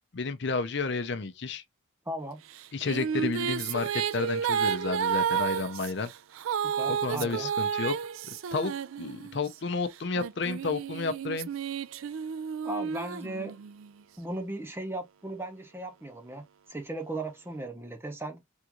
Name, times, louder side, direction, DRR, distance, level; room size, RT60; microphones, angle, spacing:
voice 1, 0.1-1.6 2.7-6.1 6.9-7.9 8.3-11.5, left 4 dB, 60° left, 0.6 m, -31 dB
voice 2, 2.1-2.5 6.6-7.5 12.6-13.6 14.2-18.5, right 1 dB, 10° right, 0.7 m, -37 dB
sound 1, 2.5-9.5 10.2-13.9, right 7 dB, 90° right, 0.4 m, -31 dB
3.6 x 2.4 x 2.9 m
head